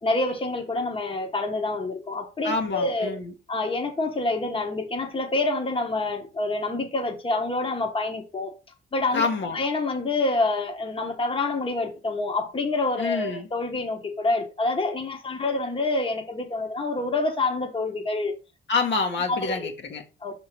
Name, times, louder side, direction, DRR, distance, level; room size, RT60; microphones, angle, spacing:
voice 1, 0.0-3.1 3.5-8.5 8.9-9.3 9.5-18.3 19.3-19.7 20.2-20.3, left 2 dB, 25° left, 1.2 m, -27 dB
voice 2, 2.4-3.3 9.1-9.6 13.0-13.5 18.7-20.0, left 4 dB, 65° left, 1.5 m, -27 dB
5.6 x 3.7 x 4.6 m
cardioid pair, 90°, 20 cm